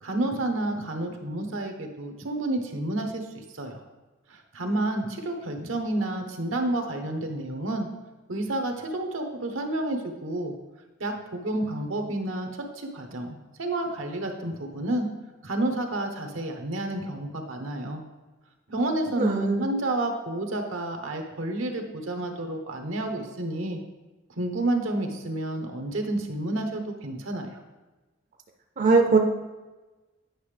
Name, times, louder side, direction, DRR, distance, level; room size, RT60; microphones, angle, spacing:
voice 1, 0.0-3.8 4.3-7.9 8.3-10.5 11.0-15.1 15.4-18.0 18.7-23.8 24.4-27.5, right 1 dB, 85° right, 4 dB, 1.0 m, -30 dB
voice 2, 19.2-19.7 28.8-29.2, right 4 dB, 40° right, 3 dB, 0.5 m, -21 dB
9.2 x 5.7 x 3.3 m, 1.2 s
head